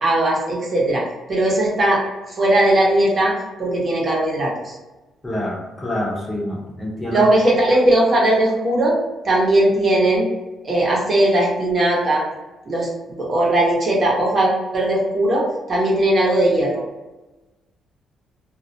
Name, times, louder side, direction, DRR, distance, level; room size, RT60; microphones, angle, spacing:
voice 1, 0.0-1.0 1.3-2.0 2.4-3.3 3.6-4.7 7.1-9.0 9.2-10.3 10.6-12.2 12.7-16.8, right 1 dB, 45° right, -4 dB, 0.8 m, -18 dB
voice 2, 5.2-7.2, left 1 dB, 20° left, -4 dB, 0.8 m, -26 dB
2.3 x 2.0 x 2.7 m, 1.1 s
cardioid pair, 90°, 0 cm